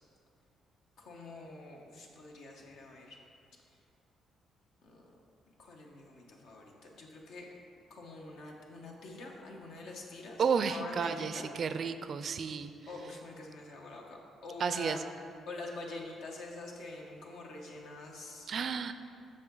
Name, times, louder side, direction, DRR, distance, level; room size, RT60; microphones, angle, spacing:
voice 1, 1.0-3.2 4.8-5.1 5.6-7.4 7.9-11.5 12.9-14.2 14.4-15.0 15.5-18.5, left 2 dB, 80° left, 0 dB, 1.1 m, -46 dB
voice 2, 10.4-12.7 14.6-15.0 18.5-18.9, right 6 dB, 55° right, 10 dB, 0.4 m, -32 dB
7.8 x 5.8 x 3.8 m, 2.4 s
cardioid pair, 90°, 0 cm